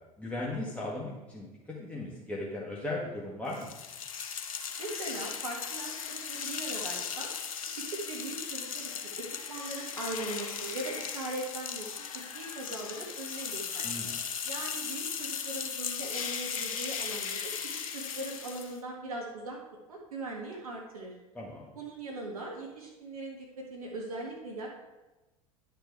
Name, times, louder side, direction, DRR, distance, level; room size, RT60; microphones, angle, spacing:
voice 1, 0.2-1.5 1.8-3.8 13.8-14.2 21.3-21.7, left 2 dB, 5° left, -5 dB, 1.7 m, -37 dB
sound 1, 3.5-18.8, left 7 dB, 70° left, 0.9 m, -37 dB
voice 2, 4.8-7.3 7.7-13.9 14.4-17.5 17.9-19.6 19.9-21.2 21.8-24.7, right 2 dB, 75° right, -1 dB, 1.8 m, -40 dB
10.0 x 7.0 x 4.6 m, 1.1 s
figure-of-eight pair, 80°, 19 cm